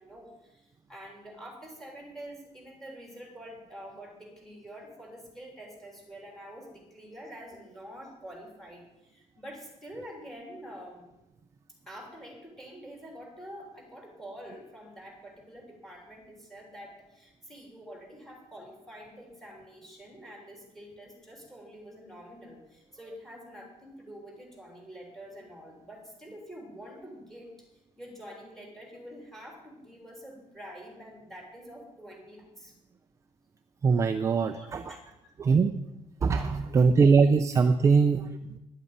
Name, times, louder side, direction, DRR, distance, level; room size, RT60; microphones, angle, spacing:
voice 1, 0.0-11.1 11.8-27.5 28.0-32.7 34.4-35.3 36.2-36.8 37.6-38.1, equal, 5° left, 0 dB, 3.4 m, -47 dB
voice 2, 33.8-34.9 35.4-35.7 36.2-38.6, right 5 dB, 25° right, 7 dB, 0.5 m, -22 dB
11.0 x 8.3 x 8.8 m, 0.92 s
cardioid pair, 175°, 13 cm